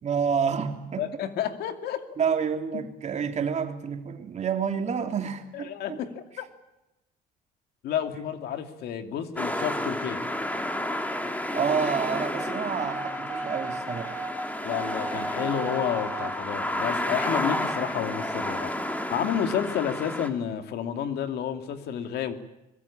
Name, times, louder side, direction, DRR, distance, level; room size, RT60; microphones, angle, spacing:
voice 1, 0.0-1.1 2.2-6.0 11.5-14.2, right 6 dB, 45° right, 4 dB, 3.2 m, -29 dB
voice 2, 1.0-2.0 2.7-2.8 5.5-6.5 7.8-10.2 14.6-22.3, left 9 dB, 75° left, 7 dB, 2.5 m, -30 dB
sound 1, 9.4-20.3, left 1 dB, 10° left, 2.7 m, -31 dB
sound 2, 12.4-16.3, right 3 dB, 20° right, 2.4 m, -35 dB
24.0 x 21.5 x 8.6 m, 0.95 s
cardioid pair, 110°, 17 cm